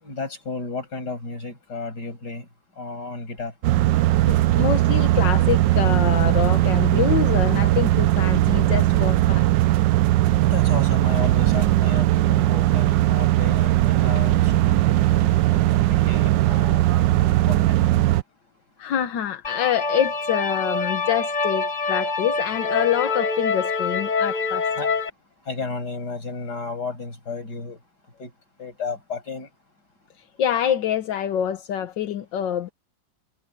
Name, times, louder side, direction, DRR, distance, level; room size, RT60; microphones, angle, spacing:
voice 1, 0.0-2.5 2.8-3.5 10.4-17.9 24.8-24.9 25.5-27.8 28.2-28.3 28.6-29.5, left 4 dB, 65° left, 7.0 m, -33 dB
sound 1, 3.6-18.2, right 15 dB, 85° right, 1.3 m, -19 dB
voice 2, 4.3-9.5 18.8-24.7 30.4-32.7, left 10 dB, 80° left, 1.7 m, -26 dB
sound 2, 19.4-25.1, left 4 dB, 30° left, 1.0 m, -25 dB
omnidirectional pair, 1.9 m